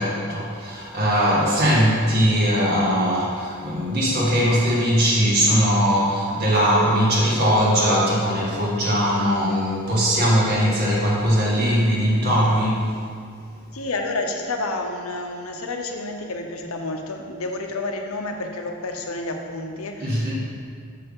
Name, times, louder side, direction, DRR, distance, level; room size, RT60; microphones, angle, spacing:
voice 1, 0.0-12.9 20.0-20.3, equal, 50° right, -5 dB, 1.8 m, -20 dB
voice 2, 13.7-20.3, left 2 dB, 90° left, 3 dB, 0.8 m, -30 dB
7.0 x 5.6 x 5.5 m, 2.2 s
head